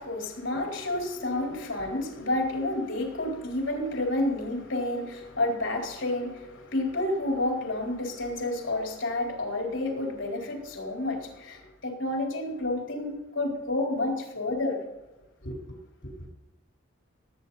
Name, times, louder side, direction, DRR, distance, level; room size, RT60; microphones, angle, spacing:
voice 1, 0.0-14.8 15.4-15.8, left 2 dB, 70° left, 4.2 m, -30 dB
18.5 x 8.8 x 4.1 m
head